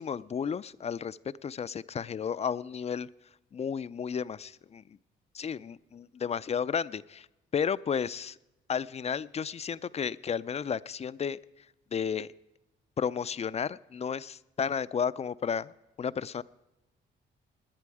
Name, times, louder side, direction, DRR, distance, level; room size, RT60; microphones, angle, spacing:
voice 1, 0.0-3.1 3.5-4.8 5.3-7.3 7.5-8.4 8.7-11.4 11.9-12.3 13.0-15.7 16.0-16.4, left 7 dB, 35° left, 17 dB, 0.4 m, -32 dB
17.5 x 10.5 x 4.8 m, 0.99 s
cardioid pair, 90°, 20 cm